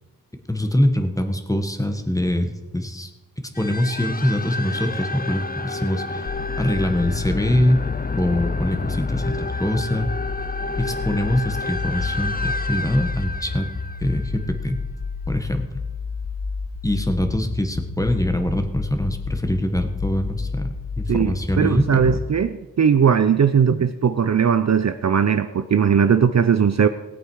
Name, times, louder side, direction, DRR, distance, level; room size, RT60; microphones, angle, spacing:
voice 1, 0.5-3.1 3.6-6.3 6.6-7.9 8.1-10.1 10.8-13.7 14.0-14.8 15.3-15.7 16.8-20.7 21.0-22.2, left 1 dB, 10° left, 6 dB, 1.3 m, -23 dB
sound 1, 3.5-14.8, left 3 dB, 25° left, 0.6 m, -30 dB
sound 2, 6.3-22.3, left 4 dB, 60° left, 1.2 m, -30 dB
voice 2, 21.1-26.9, right 7 dB, 50° right, 10 dB, 0.6 m, -18 dB
17.5 x 8.5 x 4.8 m, 1.1 s
wide cardioid pair, 80°, 37 cm